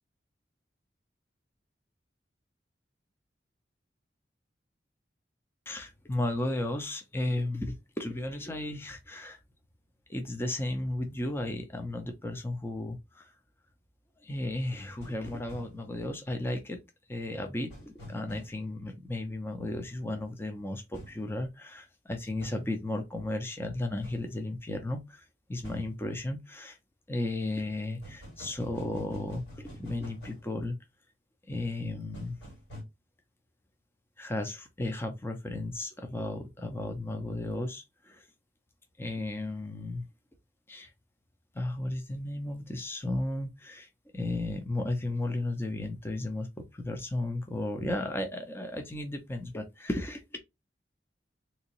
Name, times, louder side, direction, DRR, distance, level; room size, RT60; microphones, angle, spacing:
voice 1, 5.7-9.4 10.1-13.3 14.2-16.8 17.1-26.8 27.1-30.7 31.5-32.4 34.2-38.3 39.0-40.1 40.7-40.9 41.5-43.9 44.1-46.5 46.7-50.4, left 1 dB, 15° left, 0.5 m, -34 dB
sound 1, 14.9-15.7 17.7-18.5 20.9-21.2 22.4-22.6 24.0-24.2 25.6-25.9 28.0-30.4 32.1-32.8, equal, 70° left, 1.8 m, -46 dB
3.6 x 2.9 x 2.9 m
head